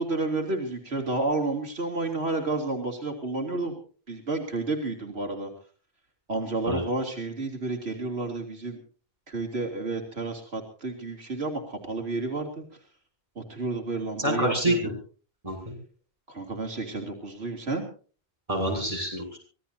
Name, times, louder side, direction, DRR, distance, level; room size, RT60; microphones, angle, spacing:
voice 1, 0.0-3.7 4.1-5.5 6.3-8.8 9.3-12.6 13.3-14.9 16.3-17.9, right 3 dB, 90° right, 2 dB, 3.4 m, -31 dB
voice 2, 14.2-14.9 15.4-15.7 18.5-19.4, equal, 35° right, 1 dB, 8.0 m, -27 dB
25.0 x 18.5 x 2.8 m, 0.40 s
omnidirectional pair, 1.0 m